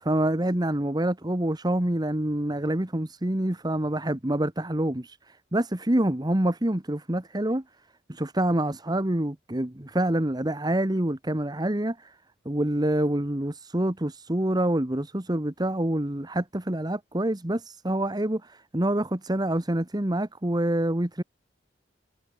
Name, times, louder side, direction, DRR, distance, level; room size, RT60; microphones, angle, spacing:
voice 1, 0.0-5.2 5.5-7.6 8.1-12.1 12.4-21.2, right 1 dB, 25° right, 1.4 m, -26 dB
head